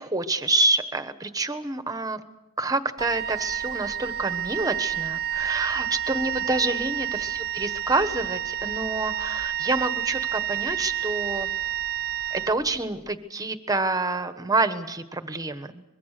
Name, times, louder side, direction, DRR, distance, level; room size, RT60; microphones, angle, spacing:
voice 1, 0.0-2.2 2.6-11.5 12.3-15.8, right 2 dB, 15° right, 10 dB, 1.2 m, -27 dB
Wind instrument woodwind instrument, 3.0-13.1, right 10 dB, 50° right, 0.7 m, -30 dB
24.5 x 22.0 x 6.7 m, 0.99 s
head